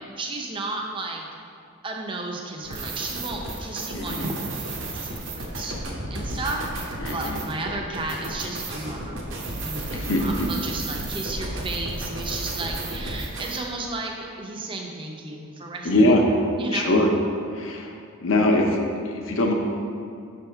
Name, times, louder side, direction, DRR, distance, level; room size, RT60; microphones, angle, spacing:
voice 1, 0.2-1.2 1.8-15.9 16.6-16.9, right 2 dB, 25° right, 0 dB, 0.5 m, -33 dB
sound 1, 2.6-13.6, right 2 dB, 60° right, 0.8 m, -33 dB
voice 2, 4.0-4.3 7.0-7.4 9.9-10.5 15.8-16.2 16.7-17.1 17.5-17.9 18.2-18.8 19.0-19.5, left 1 dB, 60° left, 1 dB, 0.7 m, -22 dB
6.0 x 3.5 x 4.4 m, 2.4 s
head